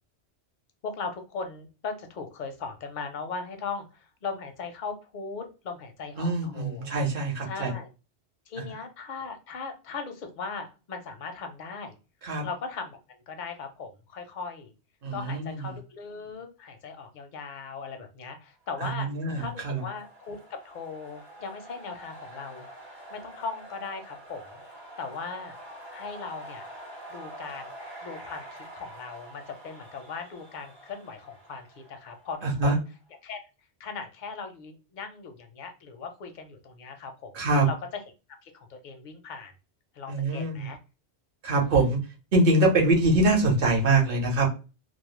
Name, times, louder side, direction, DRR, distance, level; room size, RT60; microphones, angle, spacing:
voice 1, 0.8-6.9 7.5-7.9 8.5-12.0 12.4-14.7 15.1-19.1 19.4-22.7 23.1-24.6 25.0-25.6 25.9-26.7 27.1-27.7 28.0-32.7 33.2-33.4 33.8-37.3 37.6-37.7 38.4-39.5 39.9-40.8 41.5-41.8, left 4 dB, 55° left, 6 dB, 0.5 m, -38 dB
voice 2, 6.2-7.7 12.2-12.4 15.0-15.7 18.8-19.8 32.4-32.8 37.3-37.7 40.1-40.7 41.4-42.0 42.3-44.5, right 2 dB, 55° right, 0 dB, 0.9 m, -24 dB
sound 1, 19.1-32.8, right 1 dB, 30° right, 0.6 m, -46 dB
2.3 x 2.0 x 3.0 m, 0.31 s
omnidirectional pair, 1.2 m